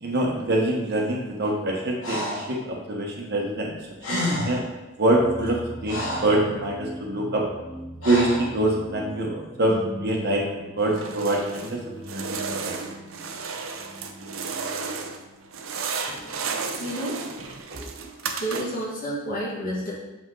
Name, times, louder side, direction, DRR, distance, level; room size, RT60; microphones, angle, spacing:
voice 1, 0.0-3.8 4.1-4.6 5.0-7.4 8.0-11.8 12.1-12.3 12.6-12.7 17.7-17.8, right 1 dB, 50° right, -1 dB, 1.1 m, -25 dB
Breathing, 2.0-2.5 3.7-3.8 4.0-4.7 5.4-6.4 8.0-8.5, left 1 dB, 85° left, 2.2 m, -29 dB
sound 1, 5.1-17.6, right 1 dB, 5° right, 1.4 m, -41 dB
sound 2, 10.9-11.8 12.0-15.2 15.5-18.9, right 5 dB, 80° right, 0.7 m, -33 dB
voice 2, 16.8-17.2 18.4-19.9, equal, 45° left, -6 dB, 1.7 m, -30 dB
7.2 x 5.3 x 3.8 m, 1.0 s
head